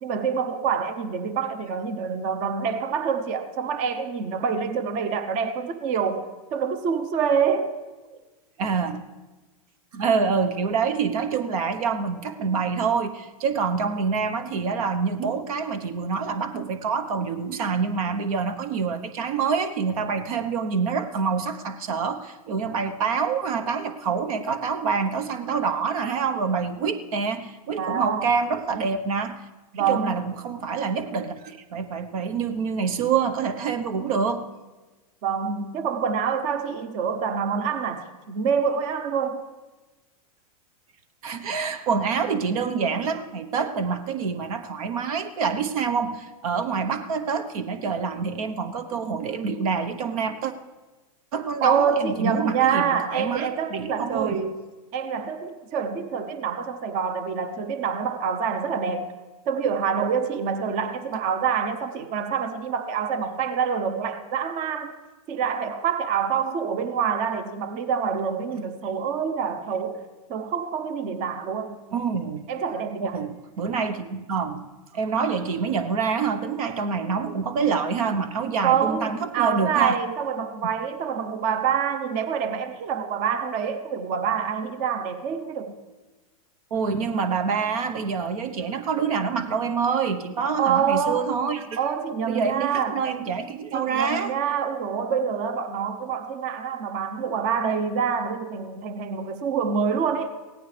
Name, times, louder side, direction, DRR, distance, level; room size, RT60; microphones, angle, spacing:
voice 1, 0.0-7.7 8.1-8.2 27.8-28.3 29.7-30.2 35.2-39.5 51.6-54.6 54.9-59.1 59.5-64.9 65.3-71.8 72.5-73.2 78.6-85.8 90.6-91.4 91.8-93.0 93.7-100.3, right 6 dB, 40° right, 1.0 m, -26 dB
voice 2, 8.6-9.0 9.9-29.4 29.8-34.5 41.2-50.5 51.3-54.4 71.9-72.5 73.0-74.7 74.9-79.9 86.7-91.8 92.2-94.3, right 5 dB, 70° right, 1.1 m, -26 dB
24.0 x 17.0 x 3.4 m
supercardioid pair, 135°, 19 cm